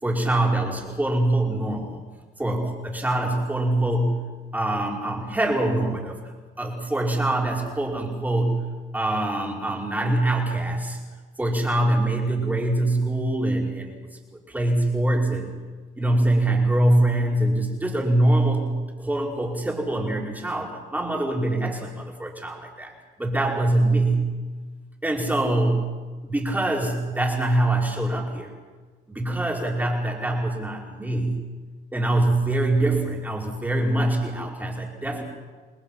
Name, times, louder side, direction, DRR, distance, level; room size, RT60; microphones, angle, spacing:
voice 1, 0.0-2.0 2.4-4.3 4.5-6.2 6.6-11.0 11.4-13.9 14.5-15.5 16.0-22.9 23.2-24.4 25.0-25.9 26.2-28.5 29.1-31.4 31.9-35.2, right 1 dB, 10° right, -1 dB, 5.3 m, -24 dB
29.5 x 20.5 x 5.9 m, 1.4 s
cardioid pair, 110°, 17 cm